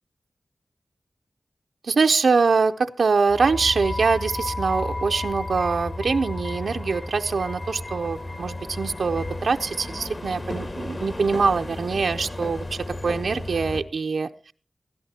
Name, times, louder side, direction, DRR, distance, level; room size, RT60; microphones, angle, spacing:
voice 1, 1.8-14.3, right 4 dB, 80° right, 7 dB, 0.5 m, -23 dB
sound 1, 3.3-13.8, left 2 dB, 40° left, 1.4 m, -33 dB
19.0 x 12.5 x 2.8 m, 0.40 s
wide cardioid pair, 105°, 0 cm